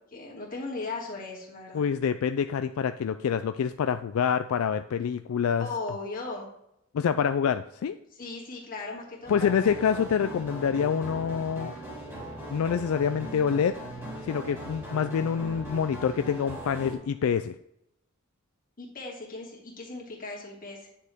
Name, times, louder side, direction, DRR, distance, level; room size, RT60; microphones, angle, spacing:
voice 1, 0.1-1.9 5.6-6.5 8.1-9.7 18.8-20.9, left 3 dB, 40° left, -3 dB, 2.5 m, -37 dB
voice 2, 1.7-5.7 6.9-8.0 9.3-11.8 12.5-13.7 14.2-17.5, left 7 dB, 75° left, 10 dB, 0.3 m, -26 dB
sound 1, 9.2-17.0, equal, 10° right, 2.8 m, -39 dB
9.5 x 6.6 x 3.6 m, 0.79 s
head